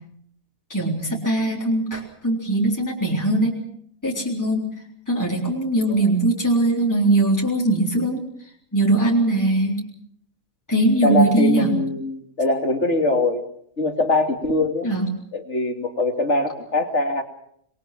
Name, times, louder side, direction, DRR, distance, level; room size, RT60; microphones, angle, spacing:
voice 1, 0.7-3.6 4.0-4.7 5.1-8.3 8.7-9.8 10.7-11.7 14.8-15.1, right 2 dB, 10° left, -3 dB, 3.9 m, -21 dB
voice 2, 11.0-13.4 13.8-14.9 15.3-17.2, left 2 dB, 50° left, 5 dB, 2.8 m, -22 dB
27.0 x 21.5 x 6.0 m, 0.68 s
omnidirectional pair, 1.5 m